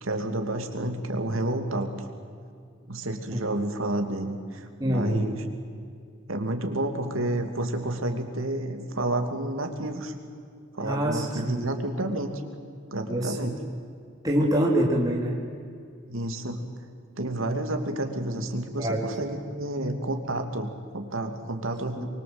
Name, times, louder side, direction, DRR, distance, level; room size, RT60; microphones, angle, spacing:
voice 1, 0.0-1.9 2.9-5.4 6.3-10.1 10.7-12.3 12.9-13.6 16.1-16.6 17.2-22.0, right 1 dB, 75° right, 5 dB, 2.7 m, -30 dB
voice 2, 4.8-5.2 10.8-11.7 13.1-13.5 14.2-15.4 18.8-19.1 22.0-22.1, right 1 dB, 15° right, -2 dB, 3.2 m, -25 dB
25.5 x 23.5 x 8.0 m, 2.3 s
head